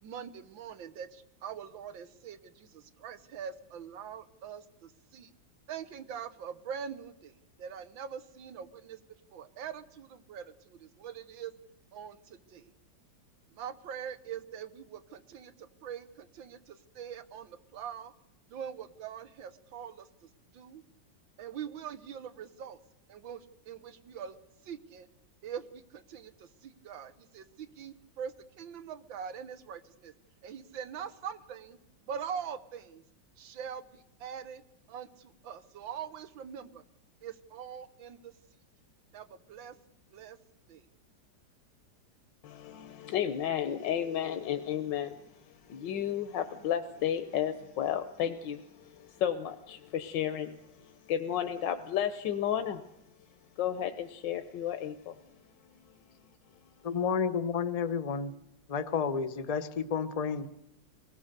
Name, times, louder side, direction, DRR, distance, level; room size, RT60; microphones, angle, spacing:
voice 1, 0.0-5.3 5.7-9.0 9.3-11.5 11.9-12.7 13.5-18.1 18.5-20.8 21.4-22.8 23.1-24.4 24.6-25.1 25.4-30.1 30.4-31.8 32.1-33.0 33.4-34.6 34.9-36.8 37.2-38.3 39.1-39.8 40.1-40.4 40.7-40.9, right 8 dB, 90° right, 11 dB, 1.8 m, -43 dB
voice 2, 42.4-52.8 53.6-55.1, left 10 dB, 70° left, 8 dB, 1.6 m, -33 dB
voice 3, 56.8-58.3 58.7-60.5, left 6 dB, 35° left, 11 dB, 0.6 m, -31 dB
24.5 x 18.5 x 6.7 m, 0.87 s
omnidirectional pair, 2.0 m